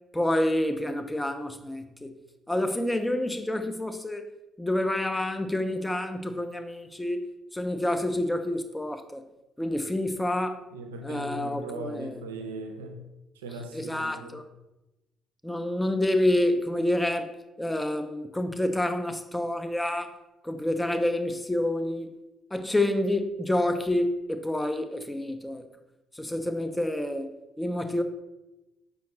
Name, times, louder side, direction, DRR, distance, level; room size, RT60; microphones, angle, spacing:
voice 1, 0.1-2.1 2.5-4.3 4.6-7.3 7.5-9.3 9.6-10.6 11.0-12.2 13.7-14.4 15.4-17.3 17.6-20.1 20.4-22.1 22.5-25.6 26.1-28.0, left 1 dB, 10° left, 0.4 m, -28 dB
voice 2, 10.7-13.0 13.4-14.4, right 2 dB, 80° right, 0.3 m, -39 dB
5.0 x 2.4 x 3.0 m
figure-of-eight pair, 45°, 0 cm